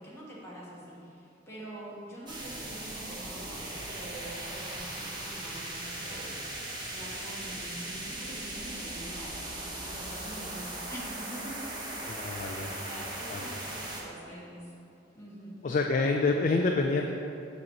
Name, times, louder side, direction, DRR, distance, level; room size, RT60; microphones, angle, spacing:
voice 1, 0.0-14.7 15.1-15.6, right 1 dB, 15° left, -7 dB, 1.3 m, -45 dB
sound 1, 2.3-14.0, right 1 dB, 25° right, 1.0 m, -38 dB
voice 2, 12.1-12.7 13.3-13.5 15.6-17.1, left 3 dB, 45° left, 2 dB, 0.4 m, -27 dB
8.3 x 3.1 x 6.4 m, 2.7 s
head